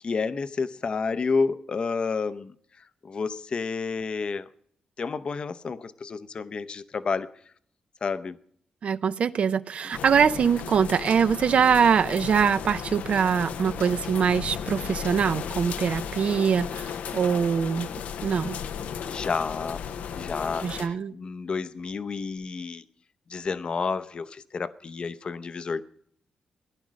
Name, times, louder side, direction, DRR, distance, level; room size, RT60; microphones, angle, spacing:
voice 1, 0.0-2.5 3.0-4.5 5.0-7.3 8.0-8.4 9.8-10.0 19.1-19.8 20.1-22.8 23.3-25.8, left 4 dB, 40° left, 0.7 m, -30 dB
voice 2, 8.8-16.9 17.1-17.9 18.2-18.6 20.6-21.1, right 7 dB, 55° right, 0.5 m, -23 dB
sound 1, 9.9-20.9, left 7 dB, 85° left, 0.7 m, -35 dB
16.5 x 11.0 x 6.3 m
cardioid pair, 115°, 2 cm